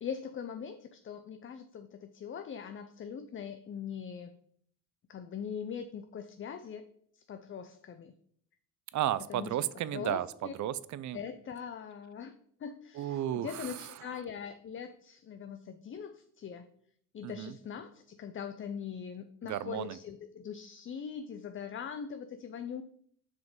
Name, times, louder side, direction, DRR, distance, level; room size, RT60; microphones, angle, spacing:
voice 1, 0.0-4.3 5.1-6.9 7.1-8.1 9.3-9.5 9.9-10.5 11.1-12.3 12.6-16.6 17.1-22.8, left 7 dB, 35° left, 9 dB, 0.5 m, -41 dB
voice 2, 8.9-11.2 12.9-14.2 17.2-17.6 19.4-20.0, right 12 dB, 50° right, 17 dB, 0.5 m, -34 dB
6.4 x 5.0 x 5.2 m, 0.64 s
cardioid pair, 105°, 37 cm